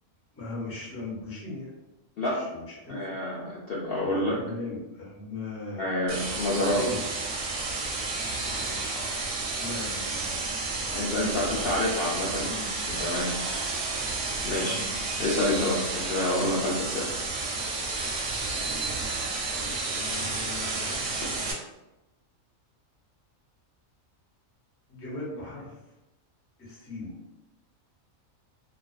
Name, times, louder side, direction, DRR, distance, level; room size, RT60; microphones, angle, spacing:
voice 1, 0.3-1.7 2.3-3.1 4.0-5.8 6.7-7.0 9.3-11.1 12.4-12.7 14.6-15.4 16.4-16.6 19.8-21.0 24.9-25.9 26.6-27.1, left 2 dB, 20° left, -6 dB, 0.4 m, -39 dB
voice 2, 2.2-2.5 2.9-4.4 5.8-6.9 10.9-12.6 12.9-13.3 14.4-14.8 15.2-17.1, left 1 dB, 65° left, -6 dB, 0.6 m, -28 dB
sound 1, 6.1-21.5, right 3 dB, 70° right, 0.9 m, -31 dB
2.4 x 2.3 x 2.3 m, 0.99 s
omnidirectional pair, 1.4 m